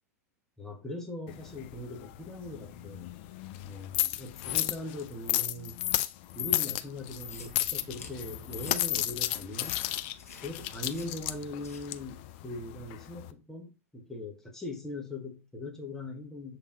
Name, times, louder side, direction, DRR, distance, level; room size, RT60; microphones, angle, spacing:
voice 1, 0.6-3.1 3.7-5.8 6.3-9.9 10.4-16.6, left 2 dB, 5° left, 0.8 m, -40 dB
sound 1, 1.3-13.3, left 14 dB, 45° left, 0.4 m, -34 dB
sound 2, 7.1-12.2, left 5 dB, 65° left, 1.0 m, -50 dB
6.8 x 3.1 x 2.4 m
figure-of-eight pair, 90°, 8 cm